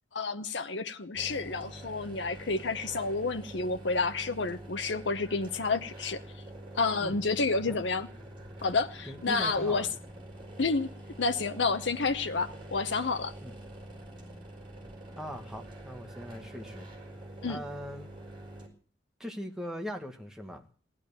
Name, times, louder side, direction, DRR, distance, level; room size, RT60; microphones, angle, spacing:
voice 1, 0.1-6.2 6.8-8.1 8.6-9.9 10.6-10.9 11.2-13.3 17.4-17.6, left 4 dB, 70° left, 0.9 m, -30 dB
sound 1, 1.1-18.7, right 1 dB, 25° right, 5.1 m, -46 dB
voice 2, 9.1-9.9 13.4-13.5 15.2-16.9 17.4-18.1 19.2-20.6, equal, 5° right, 1.7 m, -40 dB
17.0 x 11.0 x 6.9 m
head